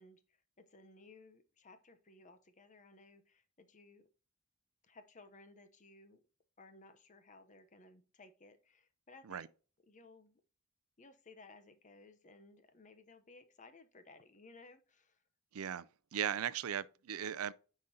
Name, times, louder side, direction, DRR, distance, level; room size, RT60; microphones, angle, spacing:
voice 1, 0.0-4.1 4.8-6.2 6.6-9.5 9.8-10.4 11.0-15.2, left 3 dB, 35° left, 0.8 m, -59 dB
voice 2, 15.5-17.5, right 9 dB, 75° right, 0.4 m, -38 dB
9.3 x 5.1 x 2.8 m
head